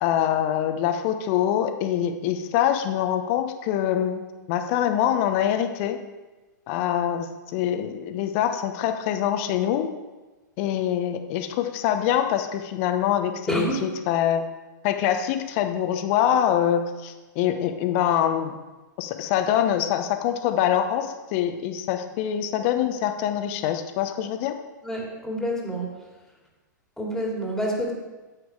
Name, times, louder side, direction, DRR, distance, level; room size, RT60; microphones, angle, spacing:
voice 1, 0.0-4.2 4.5-6.0 6.7-9.9 10.6-14.4 14.8-18.6 19.0-24.5, left 10 dB, 45° left, 7 dB, 1.0 m, -24 dB
voice 2, 13.5-13.8 24.8-25.9 27.0-27.9, equal, 5° left, -2 dB, 2.6 m, -28 dB
9.9 x 7.9 x 4.8 m, 1.2 s
figure-of-eight pair, 105°, 10 cm